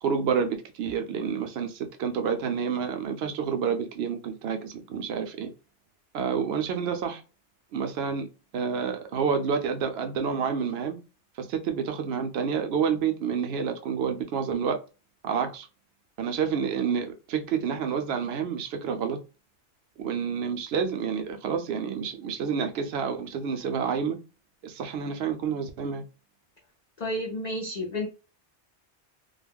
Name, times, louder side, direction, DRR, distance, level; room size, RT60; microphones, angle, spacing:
voice 1, 0.0-5.5 6.1-7.2 7.7-8.3 8.5-11.0 11.4-14.8 15.2-15.7 16.2-19.2 20.0-24.2 24.6-26.0, right 6 dB, 65° right, 0.7 m, -29 dB
voice 2, 27.0-28.1, left 1 dB, 55° left, 0.5 m, -31 dB
2.3 x 2.1 x 3.4 m
omnidirectional pair, 1.2 m